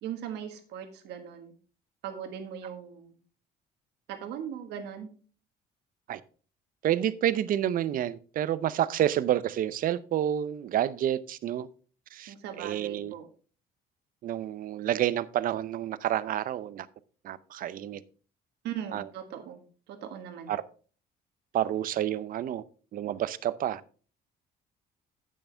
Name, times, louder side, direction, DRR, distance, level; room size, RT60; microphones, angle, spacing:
voice 1, 0.0-1.5 2.0-3.2 4.1-5.1 12.3-13.3 18.6-19.6 19.9-20.5, right 9 dB, 85° right, 1.6 m, -39 dB
voice 2, 6.8-11.7 12.1-13.1 14.2-16.9 17.2-18.0 18.9-19.1 20.5-20.6 21.5-22.6 22.9-23.8, right 11 dB, 55° right, 0.6 m, -29 dB
8.8 x 8.6 x 3.4 m
cardioid pair, 110°, 17 cm